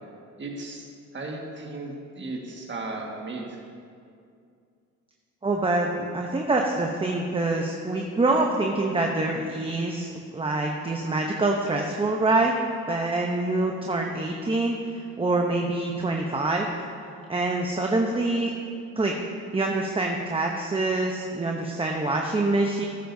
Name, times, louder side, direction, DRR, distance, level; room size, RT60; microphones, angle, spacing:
voice 1, 0.4-0.8 1.1-3.4, right 2 dB, 40° right, 0 dB, 1.7 m, -35 dB
voice 2, 5.4-12.5 12.9-16.7 17.3-18.5 19.0-19.1 19.5-22.9, right 2 dB, 20° right, 1 dB, 0.8 m, -25 dB
13.5 x 10.0 x 2.7 m, 2.4 s
cardioid pair, 90°, 30 cm